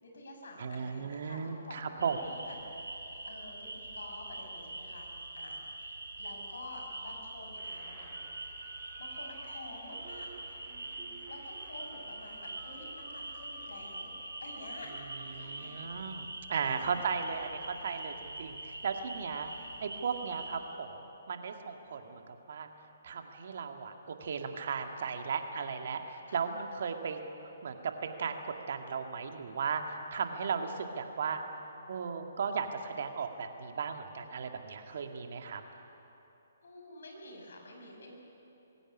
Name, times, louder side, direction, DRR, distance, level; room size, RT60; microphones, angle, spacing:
voice 1, 0.0-5.9 6.2-8.2 8.7-10.3 11.3-14.1 14.4-14.9 15.3-15.8 16.5-17.0 26.3-26.4 27.0-27.1 36.6-38.1, left 2 dB, 70° left, 1 dB, 5.9 m, -49 dB
voice 2, 0.6-2.2 15.3-19.5 19.8-20.9 21.3-22.7 23.0-27.2 27.6-31.4 31.9-35.6, right 6 dB, 55° right, 5 dB, 2.1 m, -36 dB
sound 1, 2.0-20.6, right 2 dB, 90° right, 3.8 m, -44 dB
sound 2, 7.6-16.0, right 2 dB, 30° right, 5.6 m, -54 dB
21.5 x 17.0 x 10.0 m, 3.0 s
figure-of-eight pair, 135°, 0 cm